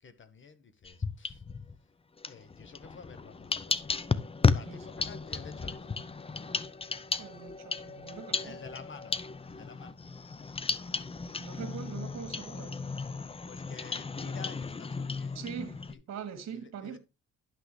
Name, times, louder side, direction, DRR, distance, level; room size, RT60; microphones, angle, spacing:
voice 1, 0.0-1.4 1.8-1.9 2.3-3.8 4.5-6.0 8.4-10.1 13.3-15.5 15.9-16.0 16.5-17.0, left 5 dB, 40° left, 1.4 m, -50 dB
sound 1, 0.8-1.8 2.2-15.9, left 4 dB, 20° left, 0.6 m, -34 dB
voice 2, 7.2-8.5 11.4-12.8 15.4-15.8 16.1-17.0, right 7 dB, 60° right, 1.9 m, -42 dB
11.5 x 6.1 x 3.2 m
cardioid pair, 90°, 30 cm